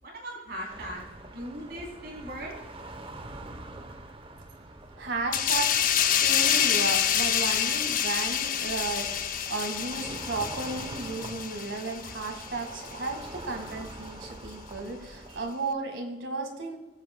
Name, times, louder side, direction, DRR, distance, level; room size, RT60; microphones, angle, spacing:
voice 1, 0.0-1.0 1.3-2.5, equal, 60° right, -2 dB, 3.3 m, -38 dB
sound 1, 0.7-15.5, right 2 dB, 30° right, 0.8 m, -44 dB
voice 2, 5.0-16.8, right 3 dB, 90° right, 3 dB, 1.8 m, -34 dB
sound 2, 5.3-12.5 12.8-13.1, left 9 dB, 50° left, 0.6 m, -27 dB
21.0 x 7.9 x 2.2 m, 1.1 s
head